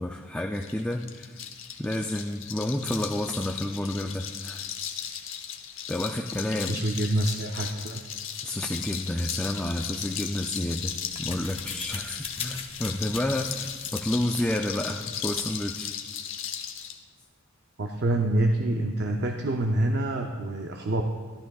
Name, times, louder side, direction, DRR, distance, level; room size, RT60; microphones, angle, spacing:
voice 1, 0.0-1.4 1.8-4.7 5.9-6.8 8.4-10.9 11.2-15.9, left 1 dB, 5° left, 2 dB, 0.3 m, -30 dB
sound 1, 0.5-17.0, left 9 dB, 70° left, 0.8 m, -36 dB
voice 2, 6.6-8.0 17.8-21.0, right 1 dB, 55° right, 3 dB, 0.6 m, -26 dB
sound 2, 10.4-15.7, left 6 dB, 30° left, 0.7 m, -42 dB
14.0 x 12.5 x 2.3 m, 1.5 s
head